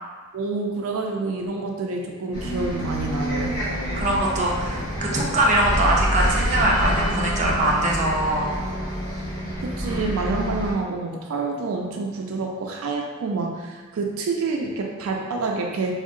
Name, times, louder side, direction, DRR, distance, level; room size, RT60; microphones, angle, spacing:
voice 1, 0.3-3.6 9.4-16.0, right 3 dB, 90° right, 0 dB, 0.4 m, -28 dB
Bus, 2.3-10.7, equal, 55° left, 1.1 m, -27 dB
voice 2, 3.9-8.6, right 1 dB, 35° right, -3 dB, 0.5 m, -22 dB
3.6 x 2.0 x 2.5 m, 1.4 s
head